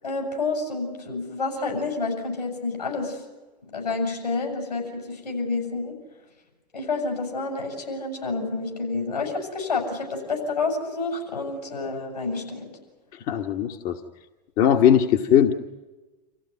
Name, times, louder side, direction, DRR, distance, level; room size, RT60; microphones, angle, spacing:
voice 1, 0.0-3.2 3.7-6.0 6.7-12.7, left 3 dB, 80° left, 1 dB, 7.4 m, -29 dB
voice 2, 13.3-14.0 14.6-15.5, left 9 dB, 40° left, 4 dB, 1.3 m, -19 dB
27.5 x 15.0 x 9.7 m, 1.2 s
figure-of-eight pair, 90°, 21 cm